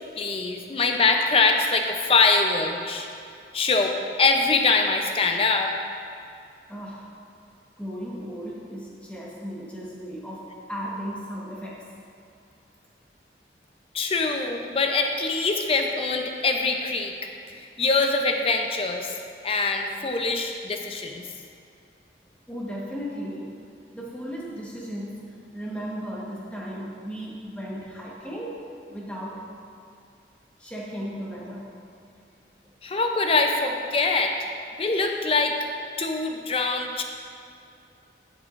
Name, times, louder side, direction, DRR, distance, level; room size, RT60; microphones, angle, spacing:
voice 1, 0.2-3.1 3.5-5.7 13.9-19.1 19.4-21.2 32.8-34.5 34.8-35.6 36.0-37.0, left 3 dB, 30° left, 4 dB, 0.6 m, -23 dB
voice 2, 6.7-7.1 7.8-11.8 22.5-23.5 23.9-29.4 30.6-31.7, equal, 5° left, -5 dB, 1.2 m, -35 dB
10.5 x 8.1 x 2.5 m, 2.6 s
head